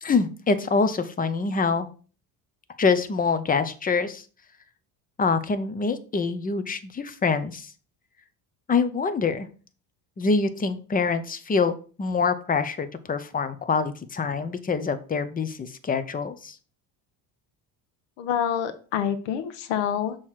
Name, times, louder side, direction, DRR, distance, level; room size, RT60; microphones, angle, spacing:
voice 1, 0.0-1.9 2.8-4.2 5.2-7.7 8.7-9.5 10.2-16.6, left 4 dB, 20° left, 11 dB, 0.6 m, -25 dB
voice 2, 18.2-20.2, left 9 dB, 90° left, 10 dB, 0.9 m, -27 dB
6.3 x 3.1 x 5.7 m, 0.39 s
cardioid pair, 115°, 43 cm